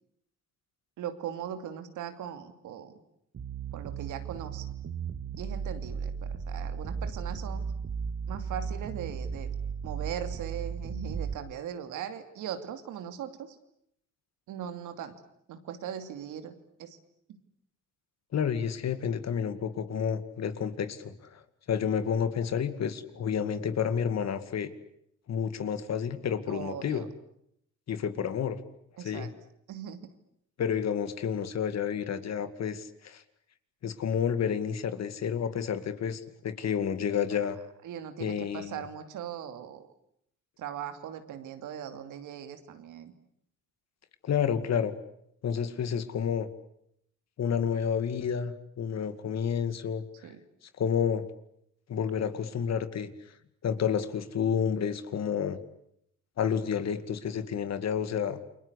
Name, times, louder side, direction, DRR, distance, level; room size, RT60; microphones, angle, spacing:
voice 1, 1.0-3.0 3.7-4.7 5.3-7.6 8.3-9.5 9.8-13.6 14.5-15.2 15.5-17.0 26.5-27.1 29.0-29.3 29.7-30.0 37.8-39.9 40.6-43.1 50.2-50.4, right 9 dB, 85° right, 8 dB, 2.8 m, -39 dB
sound 1, 3.3-11.3, right 6 dB, 50° right, 2.0 m, -35 dB
voice 2, 18.3-21.4 21.7-24.7 25.3-27.1 27.9-28.6 29.0-29.3 30.6-33.2 33.8-37.6 38.2-38.8 44.2-44.9 45.4-46.5 47.4-50.0 50.8-51.3 51.9-53.1 53.6-55.6 56.4-58.4, left 7 dB, 60° left, 11 dB, 2.3 m, -30 dB
29.5 x 22.5 x 8.3 m, 0.75 s
cardioid pair, 90°, 30 cm